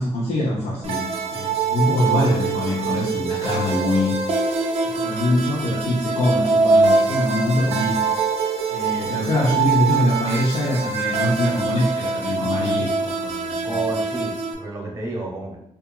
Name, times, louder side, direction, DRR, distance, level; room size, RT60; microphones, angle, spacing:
voice 1, 0.0-4.1 4.8-8.0 8.7-13.8, left 1 dB, 80° left, -6 dB, 0.6 m, -23 dB
sound 1, 0.8-14.5, right 4 dB, 70° right, 0.4 m, -23 dB
voice 2, 13.6-15.6, right 2 dB, 25° right, -2 dB, 0.8 m, -31 dB
2.8 x 2.4 x 2.3 m, 0.74 s
cardioid pair, 120°, 11 cm